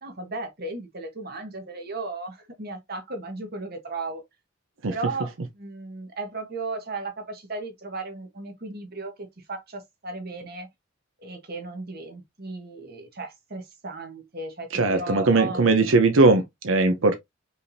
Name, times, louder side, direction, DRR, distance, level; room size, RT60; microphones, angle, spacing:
voice 1, 0.0-4.2 4.9-9.1 9.5-10.7 11.2-15.7, right 3 dB, 50° right, 1.4 m, -35 dB
voice 2, 14.7-17.2, right 3 dB, 90° right, 0.7 m, -19 dB
5.4 x 3.4 x 2.7 m
head